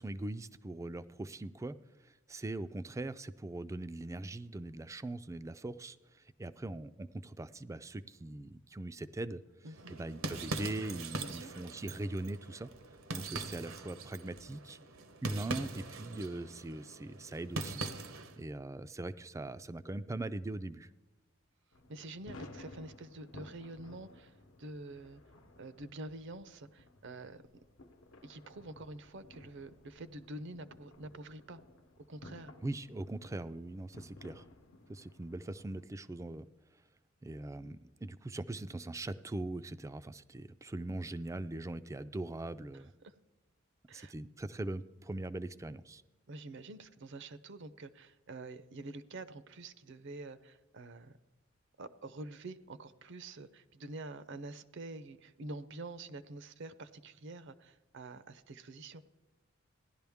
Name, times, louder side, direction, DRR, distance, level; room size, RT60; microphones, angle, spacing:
voice 1, 0.0-1.7 2.0-9.4 9.9-12.7 13.1-14.8 15.2-17.8 18.4-20.9 32.6-34.5 34.9-36.5 37.2-42.9 43.9-46.0, right 2 dB, 15° right, 13 dB, 0.3 m, -41 dB
voice 2, 9.6-10.0 11.2-11.5 21.9-24.3 24.6-25.2 25.6-27.4 28.2-31.6 32.1-32.5 42.7-43.1 43.9-44.1 46.3-51.2 51.8-59.0, right 2 dB, 60° right, 13 dB, 0.6 m, -47 dB
sound 1, 9.7-18.4, right 3 dB, 80° right, 1.0 m, -42 dB
sound 2, 21.7-35.8, left 2 dB, 75° left, 0.9 m, -56 dB
16.5 x 11.0 x 3.5 m, 1.1 s
head